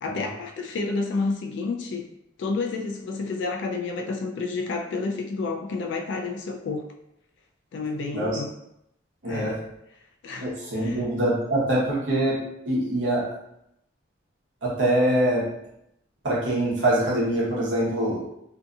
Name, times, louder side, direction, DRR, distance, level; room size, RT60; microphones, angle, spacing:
voice 1, 0.0-2.1 2.4-6.8 7.7-8.5 9.2-9.6 10.2-11.0, left 3 dB, 70° left, 3 dB, 0.3 m, -30 dB
voice 2, 9.2-9.5 10.4-12.4 12.6-13.2 14.6-15.4 16.2-18.2, right 1 dB, 75° right, -5 dB, 0.9 m, -24 dB
2.7 x 2.6 x 2.3 m, 0.81 s
head